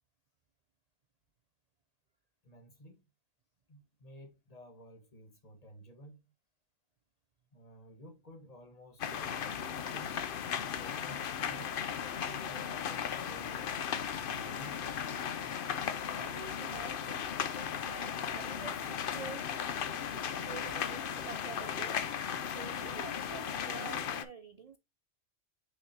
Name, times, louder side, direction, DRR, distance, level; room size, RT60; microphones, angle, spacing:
voice 1, 2.4-3.0 3.7-6.3 7.5-10.2 10.7-11.8 12.2-14.8, equal, 35° left, 1.4 m, -54 dB
sound 1, 9.0-24.2, left 8 dB, 55° left, 0.8 m, -36 dB
voice 2, 16.2-19.5 20.1-22.0 22.4-24.8, right 5 dB, 50° right, 0.5 m, -48 dB
6.1 x 5.7 x 2.7 m
omnidirectional pair, 1.1 m